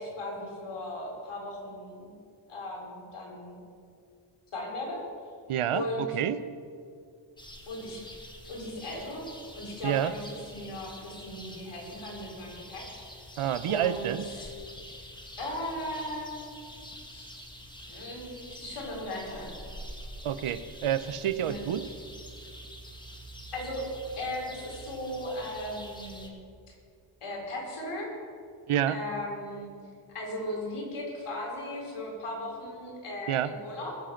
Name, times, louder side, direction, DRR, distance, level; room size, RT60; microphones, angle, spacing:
voice 1, 0.0-2.2 2.5-3.6 4.5-5.0 5.7-6.1 7.7-8.0 8.4-9.2 9.5-12.9 13.1-13.3 13.7-14.5 15.4-16.5 17.1-17.3 17.8-19.5 21.4-21.8 23.5-23.9 24.2-26.4 26.7-26.8 27.2-28.1 28.9-29.7 30.1-34.0, left 1 dB, 90° left, -2 dB, 4.2 m, -37 dB
voice 2, 5.5-6.4 9.8-10.1 13.4-14.2 20.2-21.9 28.7-29.0 33.3-33.5, right 10 dB, 90° right, 13 dB, 0.8 m, -28 dB
sound 1, 7.4-26.3, equal, 10° left, 1.5 m, -46 dB
20.5 x 7.5 x 5.9 m, 2.3 s
wide cardioid pair, 115°, 49 cm